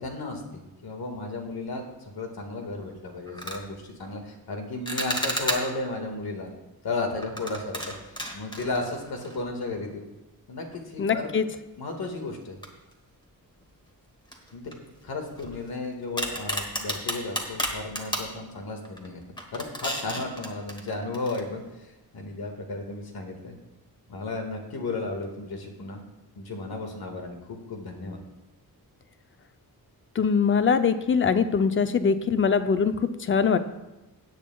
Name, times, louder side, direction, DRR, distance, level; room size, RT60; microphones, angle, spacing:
voice 1, 0.0-6.5 6.8-10.0 10.5-11.4 11.8-12.6 14.5-14.7 15.0-19.2 19.5-23.6 24.1-26.0 26.4-28.2, left 2 dB, 80° left, 3 dB, 1.8 m, -34 dB
sound 1, 2.6-2.8 3.3-3.6 4.9-5.9 7.2-9.6 9.9-10.0 10.7-10.8 12.6-13.3 13.6-13.7 14.3-15.7 16.2-18.3 18.8-19.1 19.4-21.4, equal, 10° left, 1.3 m, -33 dB
voice 2, 11.0-11.5 30.2-33.6, left 6 dB, 35° left, 10 dB, 0.5 m, -22 dB
17.0 x 8.3 x 2.3 m, 1.0 s
wide cardioid pair, 145°, 37 cm